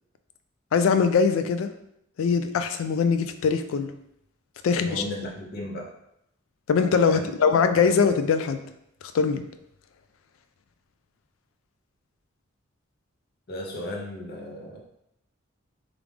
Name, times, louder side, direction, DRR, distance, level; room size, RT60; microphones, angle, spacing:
voice 1, 0.7-1.7 2.2-3.9 4.6-5.0 6.7-8.6 9.1-9.4, left 5 dB, 75° left, 9 dB, 0.3 m, -22 dB
voice 2, 4.7-5.9 7.0-7.5 7.8-8.0 13.5-14.8, left 1 dB, 55° left, 0 dB, 0.7 m, -35 dB
3.2 x 2.5 x 3.4 m, 0.78 s
head